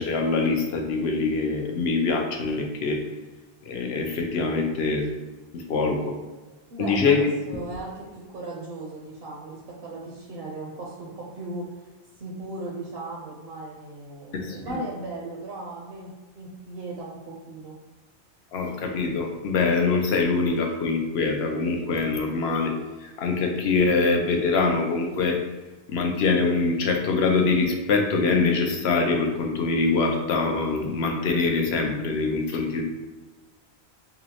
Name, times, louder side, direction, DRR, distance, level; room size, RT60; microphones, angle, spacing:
voice 1, 0.0-3.0 3.7-5.1 5.5-6.1 6.8-7.2 14.3-14.8 18.5-22.7 23.0-25.4 25.9-32.8, left 4 dB, 80° left, 2 dB, 0.9 m, -24 dB
voice 2, 6.7-11.9 12.2-17.7, right 2 dB, 70° right, -3 dB, 0.9 m, -37 dB
5.4 x 2.0 x 2.8 m, 1.2 s
omnidirectional pair, 1.1 m